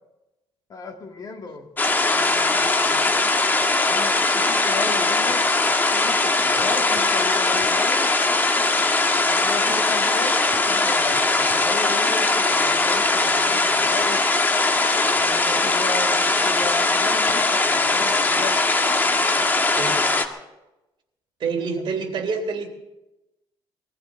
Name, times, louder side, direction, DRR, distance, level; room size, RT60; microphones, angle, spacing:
voice 1, 0.7-1.7 2.0-3.2 3.9-5.5 5.9-8.2 9.2-14.3 15.0-18.6 19.7-20.3 21.6-22.0, left 4 dB, 40° left, 3 dB, 2.4 m, -35 dB
sound 1, 1.8-20.3, left 3 dB, 20° left, 1.4 m, -20 dB
voice 2, 21.4-22.7, right 5 dB, 55° right, 3 dB, 3.6 m, -27 dB
21.5 x 14.5 x 4.1 m, 0.97 s
cardioid pair, 115°, 10 cm